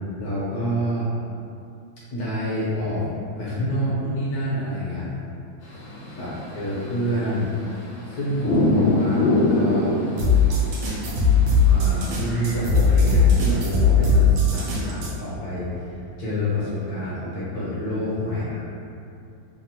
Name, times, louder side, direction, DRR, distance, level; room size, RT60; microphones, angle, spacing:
voice 1, 0.2-1.1 2.1-3.1 3.4-5.1 6.2-6.3 6.5-7.5 8.0-10.0 11.7-18.6, equal, 60° left, -9 dB, 1.1 m, -27 dB
sound 1, 5.6-12.6, left 2 dB, 80° left, 0.7 m, -25 dB
sound 2, 10.2-15.1, left 4 dB, 75° right, 1.2 m, -19 dB
3.2 x 2.1 x 2.8 m, 2.6 s
omnidirectional pair, 2.2 m